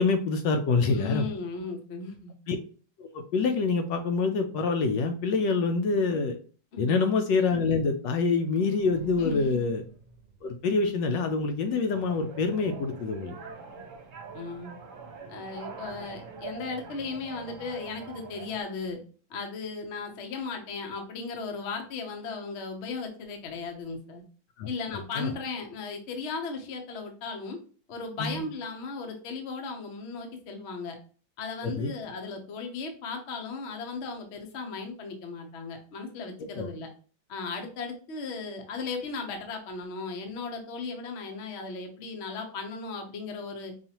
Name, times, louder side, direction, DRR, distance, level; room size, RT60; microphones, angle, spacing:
voice 1, 0.0-1.3 2.5-2.6 3.0-6.4 6.8-9.8 10.4-13.4 24.6-24.7 25.1-25.3 28.2-28.4 31.6-31.9 36.6-36.7, left 4 dB, 75° left, 6 dB, 1.1 m, -26 dB
voice 2, 0.9-2.3 6.7-7.0 9.2-9.7 14.3-14.7 15.3-19.0 19.3-24.2 24.6-27.6 27.9-31.0 31.4-36.9 37.3-43.7, left 4 dB, 55° left, 4 dB, 0.7 m, -36 dB
sound 1, 7.9-11.9, right 3 dB, 45° right, 1.0 m, -50 dB
sound 2, 11.9-18.6, right 4 dB, 65° right, 1.3 m, -44 dB
5.4 x 2.4 x 2.8 m, 0.39 s
omnidirectional pair, 2.2 m